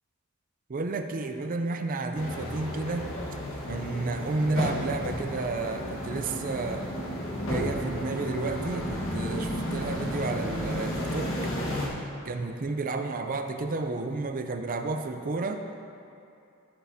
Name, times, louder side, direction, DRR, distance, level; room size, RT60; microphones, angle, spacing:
voice 1, 0.7-3.1 3.7-6.9 7.5-11.3 12.2-15.6, right 3 dB, 40° right, 6 dB, 0.5 m, -31 dB
sound 1, 2.1-11.9, equal, 65° left, 1.5 m, -32 dB
15.0 x 6.3 x 2.8 m, 2.7 s
head